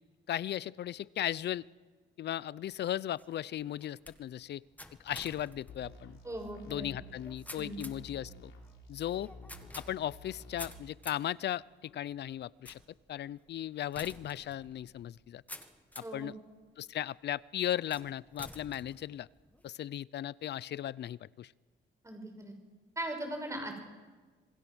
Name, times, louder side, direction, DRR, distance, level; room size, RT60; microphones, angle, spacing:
voice 1, 0.3-1.6 2.2-4.6 5.0-6.2 6.7-8.5 8.9-9.3 9.7-12.8 13.1-15.4 16.0-16.3 16.8-19.3 19.6-21.5, left 11 dB, 60° left, 21 dB, 0.6 m, -36 dB
sound 1, 2.6-16.3 16.8-17.3 17.9-19.7, left 1 dB, 10° left, 1.8 m, -52 dB
sound 2, 5.7-10.7, left 1 dB, 80° left, 4.1 m, -51 dB
voice 2, 6.2-6.9 7.5-7.8 16.0-16.3 22.0-22.5 23.0-23.9, right 1 dB, 15° right, 4 dB, 6.0 m, -39 dB
27.0 x 21.0 x 6.3 m, 1.4 s
cardioid pair, 90°, 20 cm